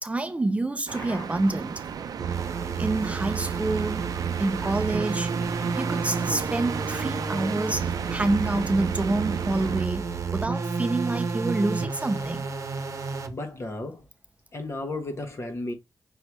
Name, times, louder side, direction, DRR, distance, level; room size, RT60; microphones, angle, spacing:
voice 1, 0.0-1.8 2.8-5.3 5.8-10.0 10.3-12.5 13.1-13.2, right 2 dB, 20° right, 0.5 m, -27 dB
voice 2, 0.9-1.3 13.0-14.1 14.5-15.7, left 2 dB, 45° left, 1.4 m, -35 dB
sound 1, 0.9-9.9, right 7 dB, 75° right, 0.5 m, -35 dB
sound 2, 2.2-13.3, right 5 dB, 55° right, 0.9 m, -30 dB
Slam, 7.0-8.6 9.6-11.1 11.4-11.5 12.2-12.8, left 2 dB, 75° left, 1.2 m, -49 dB
5.4 x 3.1 x 3.0 m
cardioid pair, 75°, 6 cm